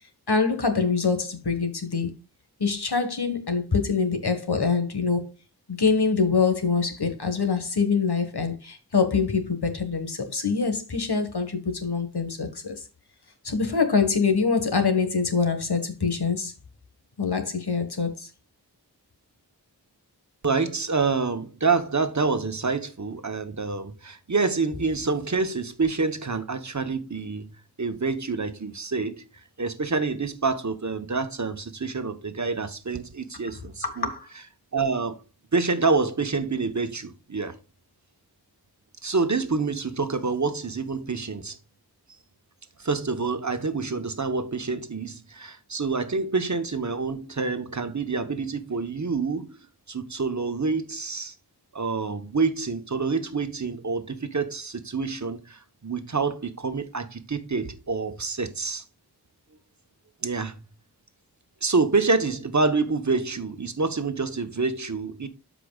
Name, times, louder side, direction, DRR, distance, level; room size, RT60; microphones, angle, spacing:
voice 1, 0.3-2.1 2.6-5.3 5.7-12.9 13.4-16.5 17.2-18.3 33.8-34.3, left 5 dB, 75° left, 1.6 m, -25 dB
voice 2, 20.4-27.4 27.8-29.2 29.6-34.1 34.7-35.2 35.5-37.6 39.0-41.6 42.8-49.6 49.9-51.3 51.7-58.8 60.2-60.6 61.6-65.3, right 4 dB, 45° right, 1.1 m, -27 dB
13.0 x 5.0 x 2.4 m
wide cardioid pair, 60°, 40 cm